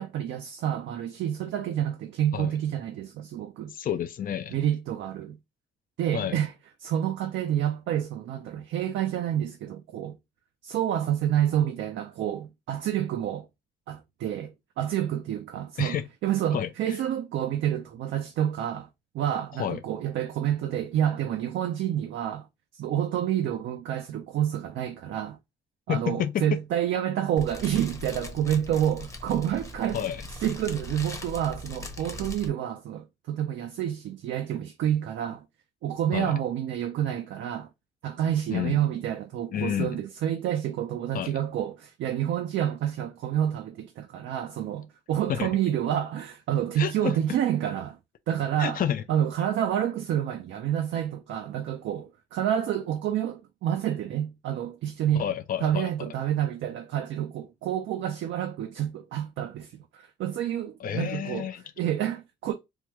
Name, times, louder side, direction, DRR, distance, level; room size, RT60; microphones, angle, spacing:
voice 1, 0.0-3.7 4.5-5.4 6.0-6.5 6.8-10.2 10.6-13.5 13.9-18.9 19.1-22.5 22.7-25.4 25.9-30.0 30.4-35.4 35.8-37.7 38.0-48.0 48.3-48.8 49.1-55.2 55.6-61.5 61.8-62.5, right 10 dB, 70° right, 0.5 m, -28 dB
voice 2, 3.7-4.6 6.1-6.4 15.8-16.1 16.5-16.7 19.6-19.8 25.9-26.4 29.9-30.2 36.1-36.3 38.5-38.8 39.5-40.0 41.1-41.3 45.3-45.5 46.8-47.2 48.6-49.0 55.2-55.9 60.8-61.6, left 9 dB, 45° left, 0.5 m, -29 dB
Fire, 27.4-32.5, left 2 dB, 15° left, 0.8 m, -40 dB
3.5 x 2.2 x 3.0 m
cardioid pair, 90°, 20 cm